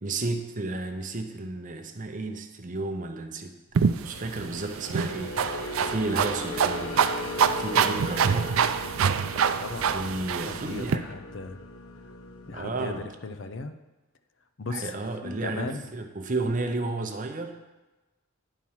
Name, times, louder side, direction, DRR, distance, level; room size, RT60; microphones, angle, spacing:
voice 1, 0.0-5.4 5.8-7.1 7.5-8.7 9.8-11.1 12.5-13.0 14.7-17.6, right 2 dB, 35° right, 5 dB, 0.7 m, -33 dB
sound 1, 3.7-11.0, right 7 dB, 75° right, 0.4 m, -26 dB
sound 2, 4.0-13.0, left 2 dB, 80° left, 0.9 m, -38 dB
voice 2, 9.6-11.6 12.5-13.0 13.2-13.7 14.6-15.9, left 3 dB, 60° left, 9 dB, 0.6 m, -37 dB
10.0 x 4.5 x 5.6 m, 1.1 s
head